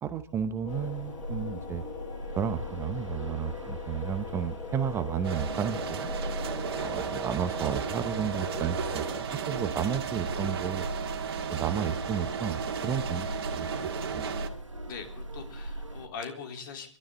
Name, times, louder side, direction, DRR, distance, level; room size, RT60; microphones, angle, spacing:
voice 1, 0.0-1.8 2.3-6.1 6.8-9.0 9.3-10.9 11.5-13.3 13.5-13.7 14.1-14.4, right 8 dB, 15° right, 11 dB, 0.8 m, -32 dB
sound 1, 0.6-9.2, left 7 dB, 20° left, 1.7 m, -42 dB
sound 2, 0.7-16.1, equal, 85° right, 1.9 m, -39 dB
sound 3, 5.2-14.5, right 7 dB, 50° right, 2.0 m, -34 dB
voice 2, 14.9-17.0, left 5 dB, 45° left, 5 dB, 3.7 m, -41 dB
26.5 x 12.5 x 3.8 m, 0.41 s
figure-of-eight pair, 115°, 15 cm